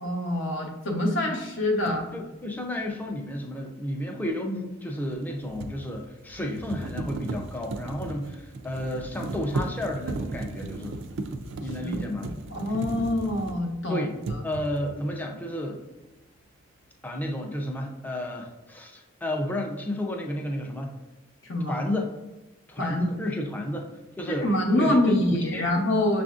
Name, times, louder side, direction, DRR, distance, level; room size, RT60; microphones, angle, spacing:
voice 1, 0.0-2.1 11.8-12.0 12.5-14.4 21.5-21.8 22.8-23.1 24.4-26.2, left 1 dB, 65° left, 1 dB, 0.8 m, -25 dB
sound 1, 1.9-2.0 5.1-13.8 14.2-15.0, right 2 dB, 70° right, 0.3 m, -35 dB
voice 2, 2.1-11.0 11.6-12.3 13.9-14.1 14.4-15.8 17.0-20.9 21.7-22.1 22.7-23.9 24.2-24.5 24.8-25.7, left 1 dB, 10° left, 2 dB, 0.4 m, -32 dB
6.3 x 2.5 x 2.4 m, 1.1 s
head